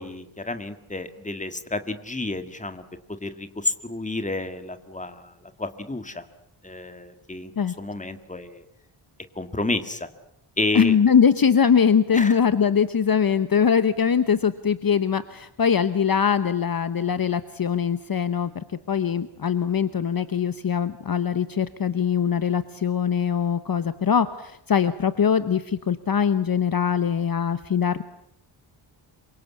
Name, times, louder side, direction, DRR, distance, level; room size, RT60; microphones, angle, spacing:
voice 1, 0.0-2.8 3.2-6.3 6.6-7.5 7.8-8.7 9.4-10.1 10.6-11.0 12.1-12.4, left 2 dB, 15° left, 9 dB, 1.9 m, -30 dB
voice 2, 10.7-28.0, left 7 dB, 45° left, 12 dB, 1.0 m, -22 dB
27.5 x 24.5 x 8.4 m, 0.77 s
wide cardioid pair, 175°, 49 cm